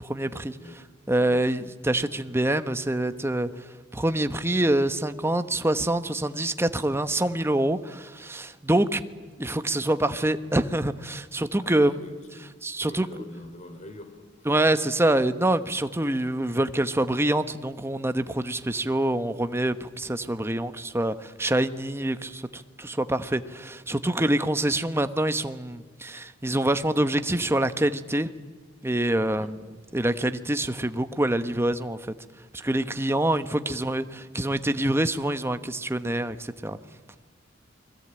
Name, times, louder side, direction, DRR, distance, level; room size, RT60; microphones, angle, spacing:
voice 1, 0.0-0.6 1.1-3.5 3.9-9.0 9.4-12.0 12.6-13.1 14.4-28.3 28.8-29.6 29.9-32.1 32.5-34.0 34.3-36.8, right 1 dB, 15° right, 1.1 m, -25 dB
voice 2, 0.6-0.9 11.6-14.5 29.4-29.5 33.7-33.9, left 1 dB, 35° left, 3.5 m, -45 dB
29.5 x 21.5 x 8.9 m
head